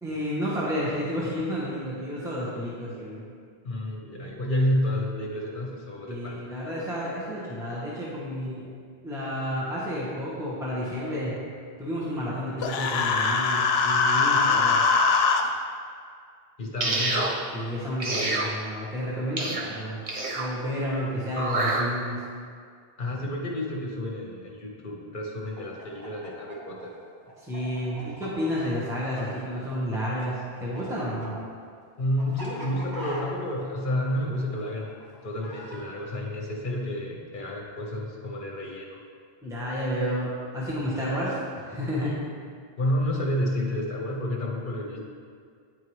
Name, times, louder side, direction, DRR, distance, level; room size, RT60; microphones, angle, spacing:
voice 1, 0.0-3.3 6.1-8.7 9.0-11.3 11.8-14.8 16.8-17.0 17.5-20.0 20.3-22.2 27.4-31.4 39.4-42.3, equal, 5° right, -7 dB, 1.2 m, -31 dB
voice 2, 3.6-6.5 16.6-17.4 23.0-26.9 32.0-39.0 42.8-45.0, left 1 dB, 55° left, -1 dB, 1.1 m, -30 dB
Human voice, 12.6-15.4, left 4 dB, 80° left, 0.8 m, -22 dB
sound 1, 16.8-17.3 18.0-18.5 19.4-19.6 20.1-20.5 21.3-21.8, right 2 dB, 35° right, 0.8 m, -27 dB
Chicken rooster, 25.5-30.0 30.2-35.9, right 1 dB, 20° right, 1.1 m, -42 dB
9.8 x 4.6 x 3.2 m, 2.1 s
omnidirectional pair, 1.0 m